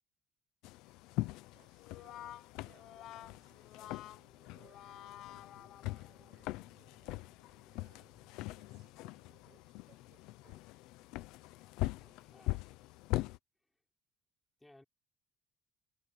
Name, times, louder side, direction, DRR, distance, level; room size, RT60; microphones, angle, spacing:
sound 1, 0.6-13.4, left 19 dB, 90° left, 0.8 m, -42 dB
voice 1, 1.4-7.3 7.7-10.7, right 13 dB, 60° right, 4.9 m, -70 dB
Brass instrument, 1.8-6.3, left 13 dB, 60° left, 1.1 m, -51 dB
sound 2, 2.8-9.6, right 7 dB, 35° right, 5.2 m, -72 dB
voice 2, 12.0-12.6 14.6-14.8, left 1 dB, 5° left, 5.0 m, -61 dB
cardioid pair, 160°, 0 cm